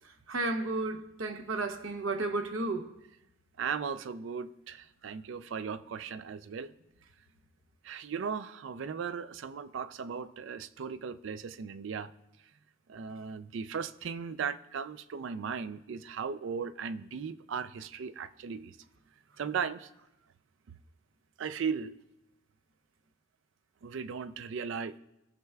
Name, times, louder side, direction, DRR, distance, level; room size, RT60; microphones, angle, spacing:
voice 1, 0.3-2.9, right 2 dB, 85° right, 0.8 m, -32 dB
voice 2, 3.6-6.7 7.8-12.1 12.9-18.8 19.4-19.9 21.4-22.0 23.8-25.0, right 6 dB, 65° right, 0.4 m, -37 dB
18.5 x 6.7 x 2.3 m
head